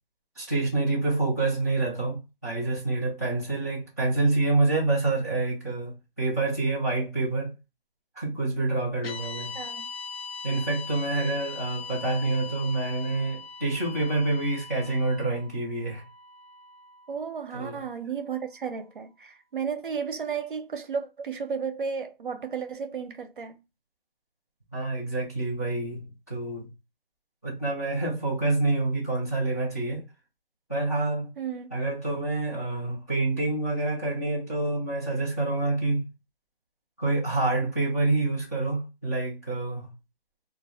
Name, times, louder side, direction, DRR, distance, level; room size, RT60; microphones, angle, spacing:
voice 1, 0.4-7.5 8.1-9.6 10.4-16.0 17.5-17.8 24.7-26.7 27.4-30.0 30.7-31.3 31.7-36.1 37.0-39.9, right 2 dB, 20° left, 0.5 m, -27 dB
sound 1, 9.0-17.3, left 4 dB, 90° left, 0.6 m, -41 dB
voice 2, 9.6-9.9 17.1-23.6 31.4-31.7, right 6 dB, 60° right, 0.6 m, -33 dB
2.2 x 2.0 x 3.3 m
hypercardioid pair, 165°, 29 cm